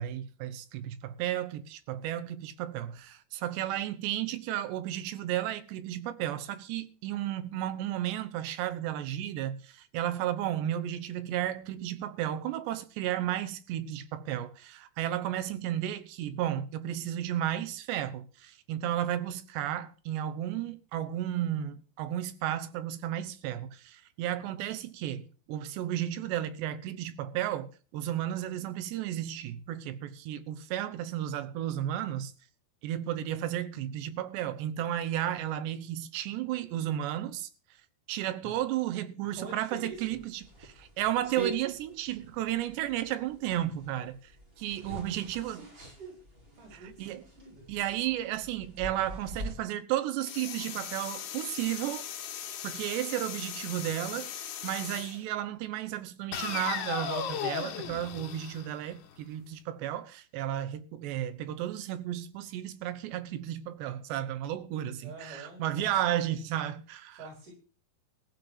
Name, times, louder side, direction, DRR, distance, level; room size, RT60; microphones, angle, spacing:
voice 1, 0.0-32.3 32.8-37.5 38.1-44.3 44.6-45.6 46.7-47.2 47.7-52.0 52.6-54.3 54.6-67.2, right 12 dB, 90° right, 3.2 m, -33 dB
voice 2, 39.2-40.2 44.9-46.2 46.5-47.6 65.0-66.4 67.1-67.5, right 2 dB, 50° right, 6.5 m, -47 dB
sound 1, 39.9-49.5, right 3 dB, 20° right, 1.8 m, -44 dB
sound 2, 50.2-55.2 56.3-59.2, left 9 dB, 75° left, 3.5 m, -37 dB
15.5 x 5.3 x 9.4 m
omnidirectional pair, 4.8 m